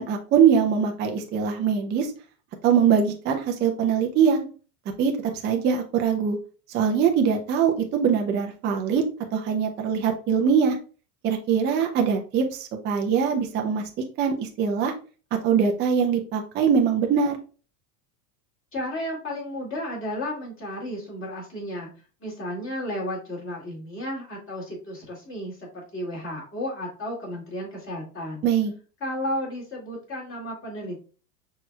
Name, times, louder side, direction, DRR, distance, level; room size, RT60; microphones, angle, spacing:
voice 1, 0.0-2.1 2.6-4.4 5.0-5.1 5.4-6.4 6.7-9.0 9.3-10.8 11.2-13.8 14.2-14.9 15.4-17.4 28.4-28.7, right 7 dB, 20° right, 3 dB, 0.4 m, -22 dB
voice 2, 18.7-21.9 22.2-28.4 29.0-31.0, left 1 dB, 25° left, -2 dB, 2.1 m, -33 dB
5.9 x 3.1 x 2.2 m, 0.37 s
supercardioid pair, 120°, 50 cm